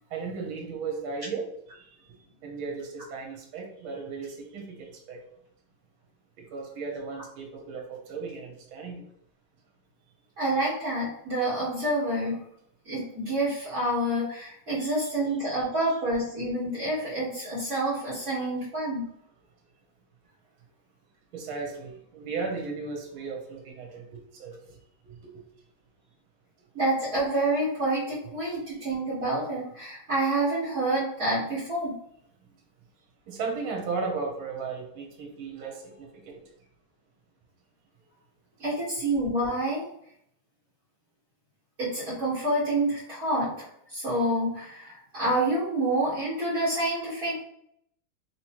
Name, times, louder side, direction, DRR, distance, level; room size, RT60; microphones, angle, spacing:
voice 1, 0.1-1.5 1.7-1.9 2.4-5.2 6.5-9.0 14.8-15.1 15.5-15.9 21.3-24.0 24.4-24.5 25.0-25.1 33.3-36.4, right 4 dB, 80° right, 1 dB, 1.7 m, -35 dB
voice 2, 10.4-12.4 12.9-19.1 26.7-31.9 38.6-39.8 41.8-47.4, right 1 dB, 45° right, -10 dB, 1.7 m, -28 dB
3.8 x 3.0 x 2.9 m, 0.71 s
omnidirectional pair, 2.2 m